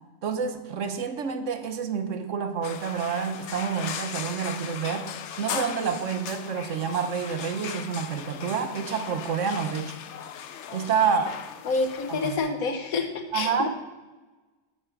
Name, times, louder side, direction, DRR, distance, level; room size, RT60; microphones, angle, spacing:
voice 1, 0.2-5.1 5.4-10.0 10.7-11.4 12.1-12.4 13.3-13.7, right 6 dB, 65° right, 8 dB, 1.3 m, -28 dB
sound 1, 2.6-12.4, left 8 dB, 65° left, 0.9 m, -38 dB
voice 2, 11.6-13.1 13.3-13.7, left 4 dB, 85° left, 6 dB, 1.6 m, -27 dB
8.6 x 7.8 x 6.0 m, 1.2 s
omnidirectional pair, 1.4 m